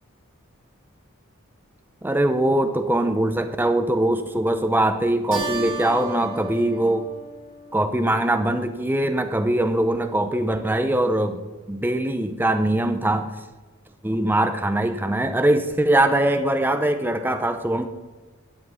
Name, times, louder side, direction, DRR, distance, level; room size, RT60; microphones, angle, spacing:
voice 1, 2.0-7.1 7.7-11.4 11.7-13.3 14.0-17.9, right 1 dB, 10° right, 8 dB, 0.6 m, -22 dB
Keyboard (musical), 5.3-8.2, right 3 dB, 65° right, 3.6 m, -34 dB
13.0 x 8.4 x 5.6 m, 1.3 s
head